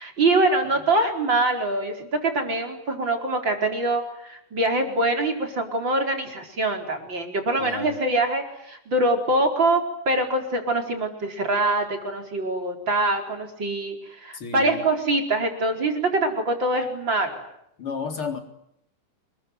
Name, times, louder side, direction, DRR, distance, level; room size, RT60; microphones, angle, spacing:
voice 1, 0.0-17.5, right 2 dB, 35° right, 4 dB, 5.1 m, -24 dB
voice 2, 7.6-8.0 14.3-14.8 17.8-18.4, left 5 dB, 45° left, 5 dB, 4.5 m, -32 dB
28.0 x 22.0 x 9.5 m, 0.76 s
omnidirectional pair, 3.5 m